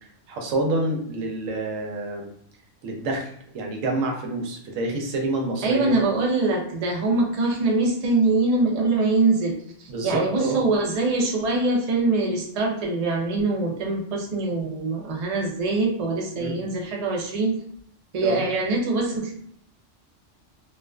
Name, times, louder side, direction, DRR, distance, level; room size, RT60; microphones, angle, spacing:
voice 1, 0.3-2.3 2.8-3.3 3.5-6.0 9.9-10.6 16.4-16.6 18.2-18.4, right 2 dB, 90° right, 1 dB, 1.0 m, -27 dB
voice 2, 5.6-17.6 18.1-19.3, right 3 dB, 45° right, 0 dB, 0.5 m, -23 dB
2.4 x 2.3 x 2.2 m, 0.65 s
omnidirectional pair, 1.3 m